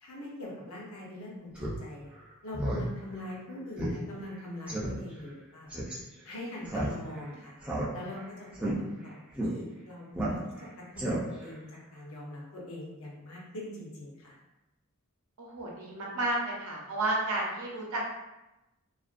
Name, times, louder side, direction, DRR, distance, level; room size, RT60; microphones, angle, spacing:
voice 1, 0.0-2.1 2.4-5.8 6.2-7.6 7.9-8.5 8.7-10.4 10.8-11.6 11.9-14.3, left 1 dB, 65° left, -4 dB, 0.7 m, -42 dB
Speech synthesizer, 1.6-1.8 2.1-2.2 2.5-2.9 3.2-3.3 3.8-4.0 4.3-4.4 4.7-4.9 5.7-6.0 6.7-7.2 7.6-8.2 8.5-8.7 9.4-9.5 10.1-10.6 11.0-11.5, right 1 dB, 5° right, 0.4 m, -32 dB
voice 2, 15.4-18.0, right 2 dB, 70° right, -2 dB, 0.6 m, -32 dB
2.4 x 2.1 x 2.4 m, 0.98 s
head